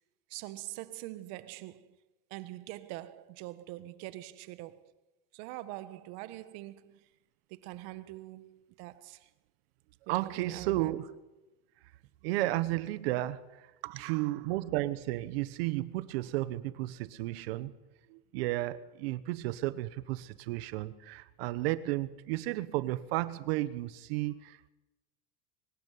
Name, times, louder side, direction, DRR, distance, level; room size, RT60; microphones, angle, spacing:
voice 1, 0.3-1.9 2.3-4.9 5.3-7.0 7.6-9.3 10.2-11.0 13.8-14.5, right 17 dB, 60° right, 1.4 m, -44 dB
voice 2, 10.1-11.1 12.2-13.4 14.0-17.8 18.1-24.7, right 17 dB, 80° right, 1.2 m, -33 dB
23.5 x 12.5 x 9.4 m
cardioid pair, 150°, 30 cm